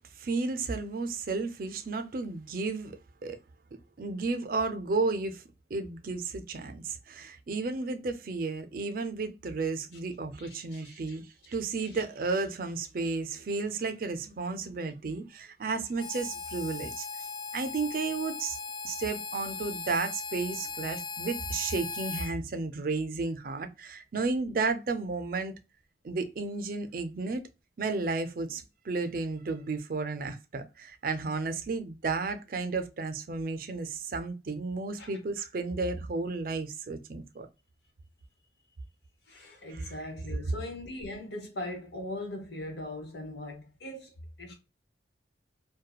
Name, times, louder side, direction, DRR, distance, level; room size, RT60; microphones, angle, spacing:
voice 1, 0.2-3.0 3.2-3.4 4.0-5.4 5.7-17.0 17.5-18.6 18.8-25.5 26.0-27.5 27.8-37.5 39.7-39.9, right 3 dB, 50° right, 0.4 m, -33 dB
Harmonica, 16.0-22.3, left 4 dB, 25° left, 0.4 m, -38 dB
voice 2, 39.3-44.5, left 1 dB, 70° left, 1.1 m, -40 dB
2.9 x 2.2 x 2.2 m
head